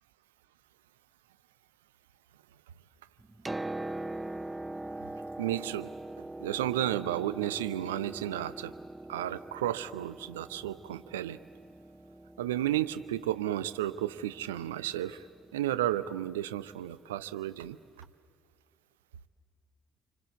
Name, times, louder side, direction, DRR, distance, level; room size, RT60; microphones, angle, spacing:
Piano, 3.2-16.9 18.0-18.1, right 2 dB, 15° right, 0.6 m, -43 dB
voice 1, 5.4-5.9 6.4-8.7 9.1-11.4 12.4-15.3 15.5-17.8, right 13 dB, 75° right, 15 dB, 0.6 m, -32 dB
27.5 x 25.0 x 8.3 m, 2.3 s
figure-of-eight pair, 45°, 0 cm